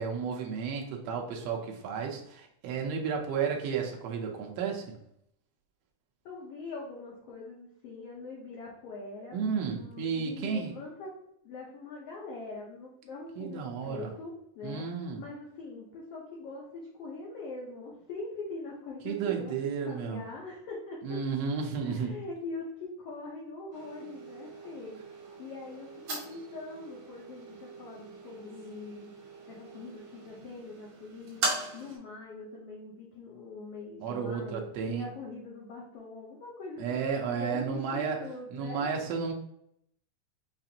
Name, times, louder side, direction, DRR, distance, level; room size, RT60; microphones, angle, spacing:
voice 1, 0.0-5.0 9.3-10.7 13.4-14.1 14.6-15.2 19.0-20.2 21.0-22.1 34.0-35.1 36.8-38.2 38.5-39.3, right 6 dB, 80° right, 1 dB, 1.4 m, -32 dB
voice 2, 6.2-9.4 9.8-11.2 11.4-14.9 15.2-21.0 21.8-29.1 29.5-31.4 31.7-38.9, left 3 dB, 75° left, -3 dB, 1.4 m, -43 dB
sound 1, 23.7-32.0, right 3 dB, 60° right, 2.1 m, -40 dB
5.5 x 2.5 x 2.8 m, 0.74 s
omnidirectional pair, 3.7 m